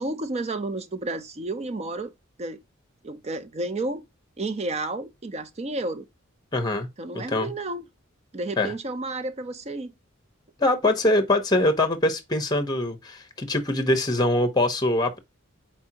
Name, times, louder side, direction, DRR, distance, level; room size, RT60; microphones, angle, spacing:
voice 1, 0.0-2.1 2.4-2.6 3.0-4.0 4.4-6.0 7.0-7.8 8.3-9.9, right 2 dB, 30° right, 0.6 m, -31 dB
voice 2, 6.5-6.9 7.1-7.5 8.6-8.7 10.6-15.2, left 1 dB, 20° left, 1.0 m, -23 dB
4.5 x 3.5 x 2.8 m
head